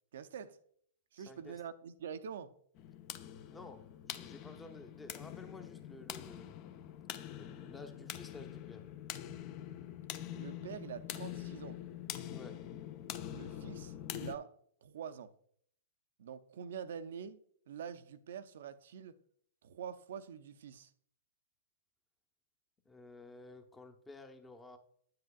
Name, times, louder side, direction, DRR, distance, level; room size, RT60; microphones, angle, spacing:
voice 1, 0.1-0.6 1.1-2.5 10.4-11.8 13.3-14.5 14.8-15.3 16.2-17.4 17.7-19.2 19.6-20.9, right 8 dB, 65° right, 0.5 m, -45 dB
voice 2, 1.3-1.6 3.5-6.6 7.2-8.9 12.3-12.7 22.8-24.8, left 2 dB, 10° left, 0.8 m, -53 dB
sound 1, 2.8-14.4, left 11 dB, 40° left, 0.6 m, -45 dB
9.1 x 7.7 x 2.4 m
hypercardioid pair, 120°, 0 cm